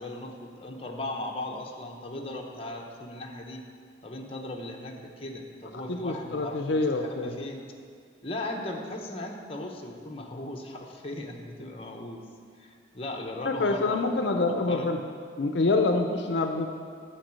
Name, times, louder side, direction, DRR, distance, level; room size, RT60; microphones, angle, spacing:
voice 1, 0.0-3.6 4.0-7.6 8.2-12.2 12.6-14.9, left 1 dB, 30° left, 1 dB, 0.9 m, -38 dB
voice 2, 5.9-7.4 13.5-15.0 15.4-16.7, left 3 dB, 70° left, 4 dB, 0.5 m, -26 dB
9.1 x 4.7 x 7.5 m, 2.3 s
head